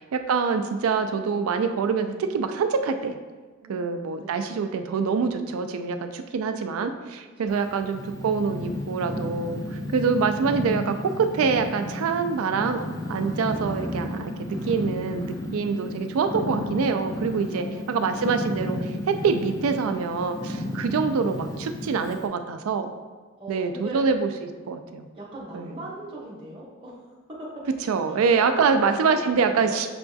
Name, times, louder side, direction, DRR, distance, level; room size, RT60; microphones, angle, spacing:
voice 1, 0.0-3.2 3.7-12.8 13.1-22.9 23.5-25.0 25.5-25.7 27.9-29.9, right 5 dB, 80° right, 7 dB, 0.3 m, -25 dB
Purr, 7.5-22.3, left 1 dB, 15° left, 0.3 m, -33 dB
voice 2, 17.5-17.9 23.4-24.0 25.1-27.0 27.4-27.5 28.1-29.8, right 1 dB, 25° right, -7 dB, 0.8 m, -39 dB
6.8 x 2.3 x 2.6 m, 1.3 s
head